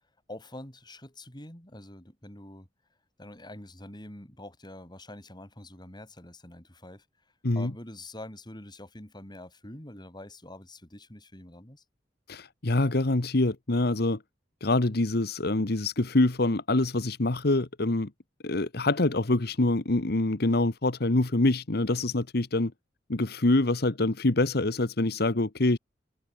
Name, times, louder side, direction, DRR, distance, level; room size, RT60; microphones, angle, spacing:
voice 1, 0.3-2.7 3.2-7.1 7.5-11.8, left 1 dB, 25° left, 6.2 m, -45 dB
voice 2, 12.3-14.2 14.6-18.1 18.4-22.7 23.1-25.8, left 2 dB, 60° left, 1.3 m, -25 dB
head